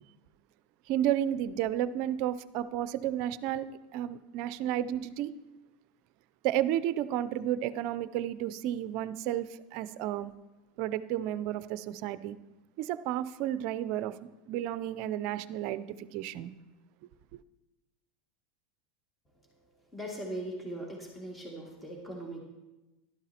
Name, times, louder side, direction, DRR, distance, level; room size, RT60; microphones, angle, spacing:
voice 1, 0.9-3.7 3.9-5.3 6.4-10.3 10.8-12.4 12.8-14.1 14.5-16.5 17.3-17.4, right 12 dB, 60° right, 14 dB, 0.4 m, -32 dB
voice 2, 19.9-22.4, right 1 dB, 10° left, -1 dB, 2.0 m, -39 dB
12.0 x 11.5 x 2.9 m, 1.0 s
hypercardioid pair, 95°, 0 cm